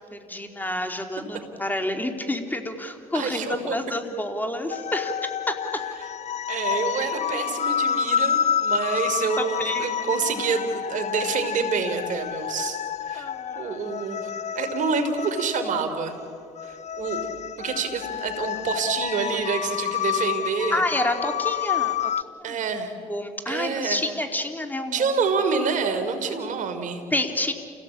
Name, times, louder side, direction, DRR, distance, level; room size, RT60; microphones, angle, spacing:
voice 1, 0.1-5.1 5.5-5.6 9.4-9.9 13.1-13.8 20.7-22.1 22.5-22.6 23.0-25.1 27.1-27.5, left 1 dB, 10° left, 5 dB, 3.1 m, -29 dB
voice 2, 3.1-3.7 6.5-12.8 13.1-13.3 13.5-16.2 16.6-17.2 17.6-20.8 22.4-23.0 23.5-24.1 24.9-27.0, right 5 dB, 65° right, 7 dB, 3.3 m, -27 dB
sound 1, 4.7-22.2, left 9 dB, 55° left, 0.6 m, -29 dB
28.5 x 17.0 x 8.5 m, 2.5 s
supercardioid pair, 75°, 14 cm